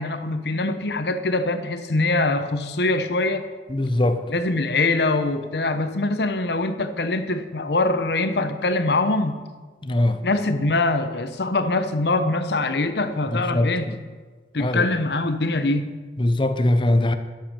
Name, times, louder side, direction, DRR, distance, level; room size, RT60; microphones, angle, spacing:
voice 1, 0.0-3.4 4.3-9.4 10.2-13.9 14.5-15.9, left 2 dB, 65° left, 0.9 m, -23 dB
voice 2, 3.7-4.2 9.8-10.2 13.3-14.0 14.6-14.8 16.2-17.2, left 1 dB, 30° left, 0.7 m, -21 dB
12.0 x 7.6 x 6.8 m
head